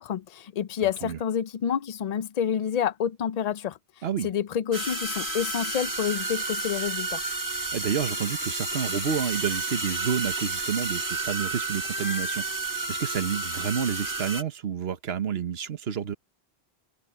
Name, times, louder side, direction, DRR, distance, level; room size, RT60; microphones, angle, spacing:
voice 1, 0.0-3.8 4.2-7.2, left 8 dB, 50° left, 0.5 m, -28 dB
sound 1, 4.7-14.4, right 3 dB, 20° right, 1.7 m, -31 dB
voice 2, 7.7-16.2, right 7 dB, 75° right, 1.3 m, -30 dB
omnidirectional pair, 1.1 m